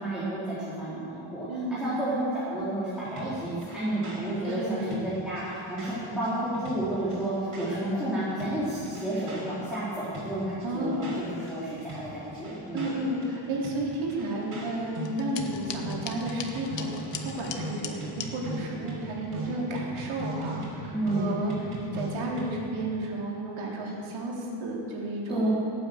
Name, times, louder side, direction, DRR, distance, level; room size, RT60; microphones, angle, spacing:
voice 1, 0.0-10.5 10.7-13.0 20.9-21.4 25.3-25.5, right 1 dB, ahead, -12 dB, 4.0 m, -31 dB
voice 2, 1.5-1.9 4.4-5.0 10.6-11.1 12.7-25.5, right 1 dB, 75° right, -3 dB, 3.7 m, -32 dB
sound 1, 3.0-8.0 8.3-11.5 11.8-22.7, right 1 dB, 40° right, 4.9 m, -39 dB
sound 2, 15.0-18.3, left 7 dB, 60° left, 1.3 m, -39 dB
17.5 x 9.2 x 8.0 m, 2.6 s
cardioid pair, 135°, 48 cm